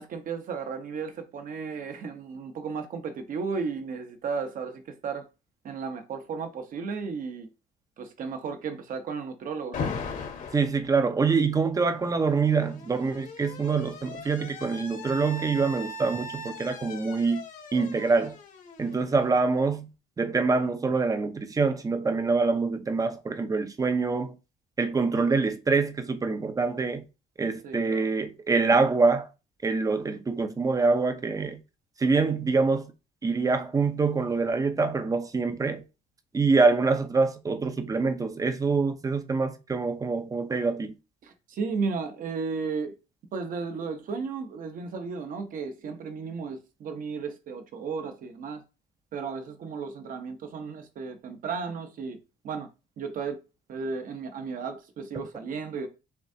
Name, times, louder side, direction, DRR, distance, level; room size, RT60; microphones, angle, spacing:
voice 1, 0.0-5.3 5.6-7.5 8.0-9.9 27.6-28.1 41.2-42.9 43.3-48.6 49.1-52.2 52.4-52.7 53.0-53.4 53.7-55.9, right 5 dB, 55° right, 1.0 m, -34 dB
Alarm, 9.7-10.7 11.9-19.6, left 4 dB, 50° left, 1.1 m, -39 dB
voice 2, 10.5-17.4 17.7-18.4 18.8-19.9 20.2-24.4 24.8-27.0 27.4-29.3 29.6-31.6 32.0-32.9 33.2-35.8 36.3-40.9, right 4 dB, 20° right, 0.6 m, -25 dB
6.9 x 2.4 x 2.8 m
cardioid pair, 110°, 17 cm